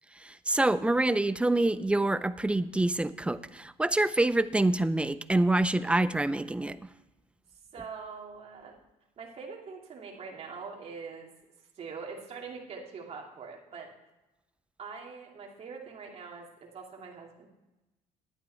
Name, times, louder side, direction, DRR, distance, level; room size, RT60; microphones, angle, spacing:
voice 1, 0.5-6.8, right 2 dB, 10° right, 14 dB, 0.4 m, -26 dB
voice 2, 7.7-8.8 9.2-11.3 11.8-13.9 14.8-17.5, right 5 dB, 45° right, 0 dB, 2.4 m, -43 dB
11.5 x 9.3 x 4.5 m, 1.0 s
cardioid pair, 120°, 15 cm